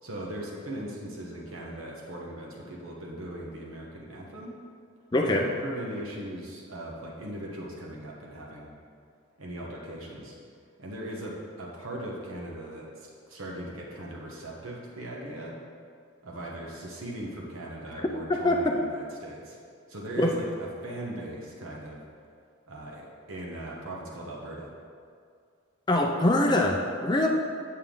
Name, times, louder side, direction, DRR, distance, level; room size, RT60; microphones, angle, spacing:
voice 1, 0.0-4.5 5.2-8.7 9.4-10.4 10.8-15.5 16.2-19.6 19.9-22.0 22.7-24.7, right 1 dB, 70° right, -3 dB, 1.2 m, -39 dB
voice 2, 5.1-5.5 18.4-18.7 20.2-20.4 25.9-27.3, left 1 dB, 20° left, 1 dB, 0.5 m, -23 dB
8.9 x 6.7 x 3.8 m, 2.2 s
head